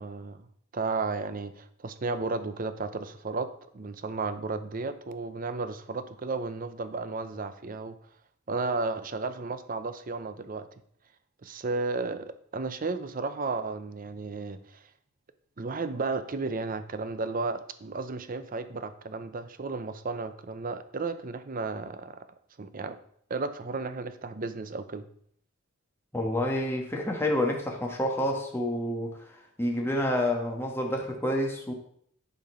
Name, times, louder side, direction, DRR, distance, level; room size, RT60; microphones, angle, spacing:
voice 1, 0.0-3.5 3.7-8.0 8.5-10.7 11.4-14.8 15.6-22.3 22.6-23.0 23.3-25.0, right 3 dB, 40° right, 11 dB, 0.6 m, -33 dB
voice 2, 26.1-31.7, left 1 dB, 10° left, 0 dB, 1.5 m, -29 dB
10.5 x 4.3 x 5.5 m, 0.65 s
head